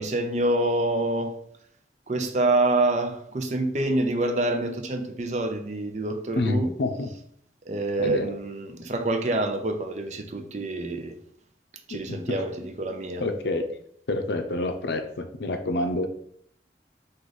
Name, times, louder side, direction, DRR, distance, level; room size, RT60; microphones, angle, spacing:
voice 1, 0.0-1.4 2.1-6.7 7.7-11.2 11.9-13.2, right 2 dB, 40° right, 0.5 m, -26 dB
voice 2, 6.4-7.1 8.0-8.3 12.1-12.4 13.2-13.7 14.1-16.1, left 2 dB, 75° left, 0.5 m, -27 dB
4.7 x 2.5 x 4.0 m
head